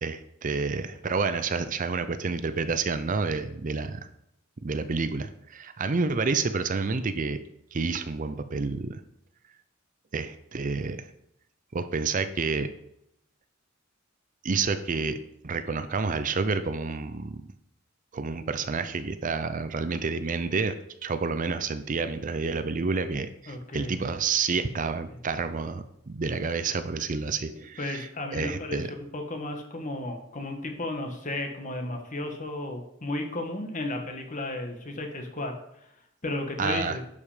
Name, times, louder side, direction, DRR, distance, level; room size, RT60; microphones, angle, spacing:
voice 1, 0.0-4.0 4.6-7.4 7.7-9.0 10.1-11.1 11.7-12.7 14.4-15.2 15.4-17.4 18.1-20.7 21.0-28.9 36.6-37.0, right 4 dB, 40° right, 11 dB, 0.5 m, -29 dB
voice 2, 23.5-23.9 25.1-25.2 27.8-28.8 29.1-35.9 36.2-37.0, left 2 dB, 40° left, 4 dB, 1.5 m, -34 dB
11.0 x 5.4 x 5.0 m, 0.79 s
head